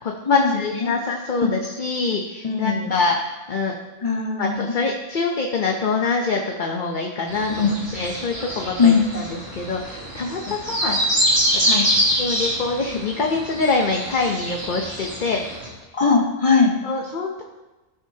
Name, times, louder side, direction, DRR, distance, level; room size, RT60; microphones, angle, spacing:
voice 1, 0.0-3.8 4.4-11.0 11.5-11.6 12.1-15.4 16.8-17.4, left 3 dB, 45° left, 1 dB, 0.9 m, -25 dB
voice 2, 2.4-2.9 4.0-4.7 7.5-7.8 8.8-9.1 10.5-10.6 11.6-11.9 15.9-16.7, left 5 dB, 30° left, 0 dB, 1.3 m, -20 dB
sound 1, 7.3-15.7, equal, 55° right, 3.1 m, -25 dB
16.5 x 6.3 x 2.8 m, 1.1 s
omnidirectional pair, 1.2 m